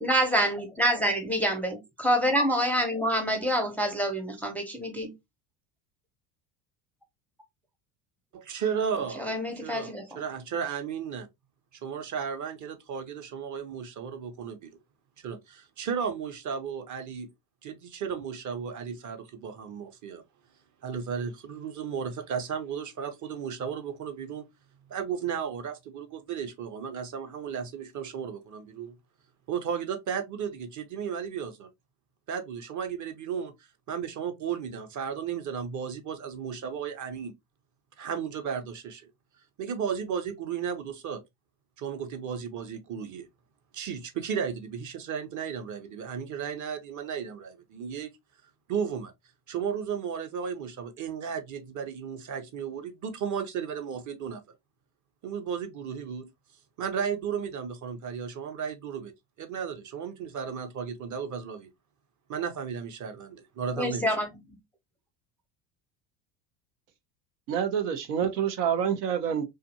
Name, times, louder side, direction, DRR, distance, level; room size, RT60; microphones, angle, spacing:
voice 1, 0.0-5.1 9.1-10.2 63.7-64.6, equal, 5° left, 0.5 m, -27 dB
voice 2, 8.3-9.3 9.6-11.3 11.8-14.7 15.2-17.3 17.6-20.2 20.8-24.4 24.9-29.0 29.5-31.7 32.3-33.5 33.9-37.3 38.0-39.0 39.6-41.2 41.8-43.3 43.7-48.1 48.7-49.1 49.5-54.4 55.2-56.3 56.8-59.1 59.4-61.7 62.3-64.1, right 7 dB, 40° right, 0.8 m, -34 dB
voice 3, 67.5-69.4, right 8 dB, 80° right, 0.8 m, -27 dB
2.7 x 2.5 x 2.7 m
hypercardioid pair, 80°, 48 cm